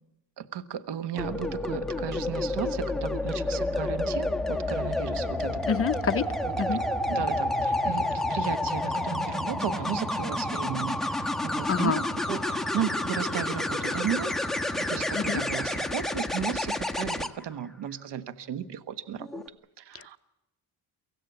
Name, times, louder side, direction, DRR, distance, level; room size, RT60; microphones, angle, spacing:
voice 1, 0.4-5.7 7.1-14.3 14.8-19.3 19.8-20.2, right 9 dB, 60° right, 12 dB, 1.5 m, -35 dB
sound 1, 1.2-17.3 19.2-19.5, left 1 dB, ahead, 1.3 m, -29 dB
voice 2, 5.7-6.8 11.7-12.0 15.1-15.4 19.9-20.1, left 7 dB, 30° left, 11 dB, 0.8 m, -28 dB
24.5 x 16.5 x 8.4 m, 1.0 s
cardioid pair, 90°, 47 cm